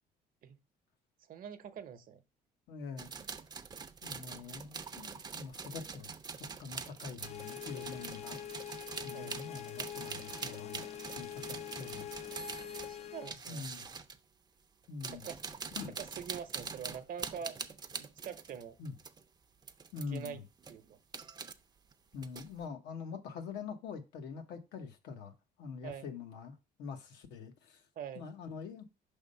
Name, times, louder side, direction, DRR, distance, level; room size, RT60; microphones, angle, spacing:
voice 1, 1.2-2.2 9.1-9.4 12.9-13.7 15.1-15.4 16.0-17.6 18.0-18.8 20.1-20.4 20.7-21.0 25.8-26.1 28.0-28.3, right 8 dB, 55° right, 0.8 m, -44 dB
voice 2, 2.7-3.1 4.0-6.1 6.6-8.5 9.0-10.9 11.1-12.1 13.5-13.8 14.9-15.3 15.8-15.9 18.8-18.9 19.9-20.4 22.1-27.8 28.1-28.8, left 5 dB, 85° left, 1.1 m, -44 dB
sound 1, 3.0-14.2 14.8-19.2 19.6-20.3 20.6-21.5 21.9-22.6, right 5 dB, 25° right, 0.5 m, -44 dB
sound 2, 7.2-13.4, left 10 dB, 40° left, 0.4 m, -45 dB
5.4 x 3.5 x 5.4 m
cardioid pair, 110°, 17 cm